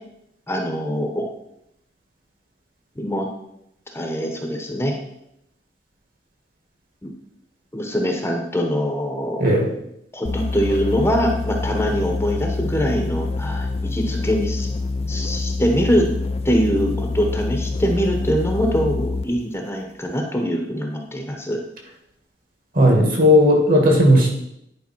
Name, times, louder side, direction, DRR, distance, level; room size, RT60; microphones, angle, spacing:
voice 1, 0.5-1.3 2.9-3.3 3.9-4.9 7.0-7.1 7.7-9.4 10.1-14.7 15.1-16.1 16.4-21.6, equal, 15° left, 2 dB, 1.0 m, -23 dB
sound 1, 10.2-19.4, left 3 dB, 35° left, 0.5 m, -26 dB
voice 2, 22.7-24.3, equal, 50° right, 0 dB, 2.2 m, -15 dB
9.9 x 5.0 x 4.6 m, 0.79 s
head